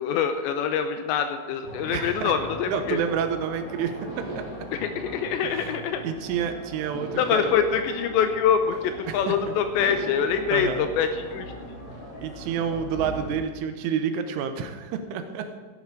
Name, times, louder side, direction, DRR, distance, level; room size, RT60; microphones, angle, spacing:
voice 1, 0.0-3.0 4.7-6.0 7.2-11.5, left 7 dB, 80° left, 8 dB, 2.7 m, -25 dB
sound 1, 1.6-13.4, equal, 25° left, 2.2 m, -40 dB
sound 2, 1.8-3.5 4.1-6.3 6.9-9.2 9.8-12.1, right 2 dB, 60° right, 4.8 m, -43 dB
voice 2, 1.9-2.3 2.7-4.0 4.4-4.5 5.5-5.7 6.0-7.6 9.1-9.2 10.5-10.9 12.2-15.6, right 7 dB, 85° right, 8 dB, 3.4 m, -29 dB
14.0 x 11.0 x 5.0 m, 1.5 s
omnidirectional pair, 5.6 m